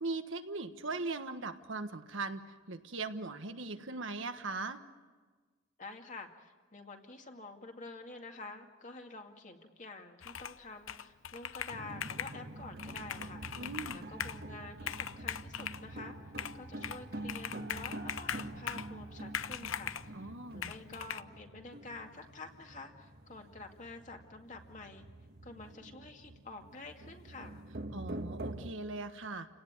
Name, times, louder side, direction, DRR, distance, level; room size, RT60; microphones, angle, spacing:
voice 1, 0.0-2.4 2.7-4.8 13.6-14.0 20.1-20.7 27.9-29.5, right 3 dB, 75° right, 7 dB, 1.4 m, -39 dB
voice 2, 5.8-13.6 13.9-16.2 16.5-25.0 25.4-27.6, left 3 dB, 40° left, 3 dB, 2.2 m, -49 dB
Computer keyboard, 10.2-10.6 10.9-12.4 12.8-14.4 14.8-15.8 16.4-17.0 17.3-18.9 19.3-20.1 20.6-21.2, left 9 dB, 85° left, 0.7 m, -40 dB
sound 1, 11.7-28.7, right 1 dB, 50° right, 1.4 m, -46 dB
30.0 x 18.0 x 9.6 m, 1.4 s
head